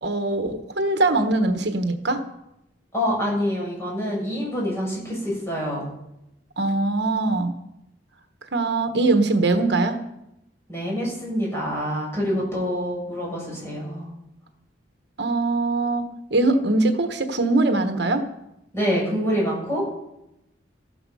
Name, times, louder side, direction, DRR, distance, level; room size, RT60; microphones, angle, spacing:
voice 1, 0.0-2.2 6.6-7.5 8.5-10.0 15.2-18.2, right 2 dB, 65° right, 7 dB, 1.2 m, -22 dB
voice 2, 2.9-5.9 10.7-14.0 18.7-19.9, equal, 15° left, -5 dB, 7.4 m, -26 dB
14.0 x 12.5 x 5.5 m, 0.87 s
head